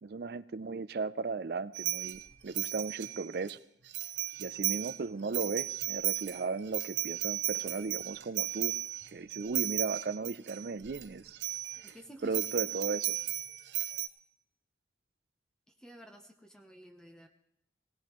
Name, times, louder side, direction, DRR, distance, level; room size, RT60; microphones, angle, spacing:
voice 1, 0.0-3.6 4.4-8.7 9.1-11.4 11.8-11.9 12.2-13.2, right 4 dB, 55° right, 16 dB, 0.4 m, -36 dB
sound 1, 1.7-3.5 3.9-5.0 5.2-11.1 11.4-11.9 12.3-14.1, right 14 dB, 80° right, 0.8 m, -35 dB
voice 2, 11.8-12.4 15.7-17.3, right 1 dB, 5° left, 4 dB, 0.8 m, -51 dB
17.5 x 17.5 x 3.1 m, 0.76 s
head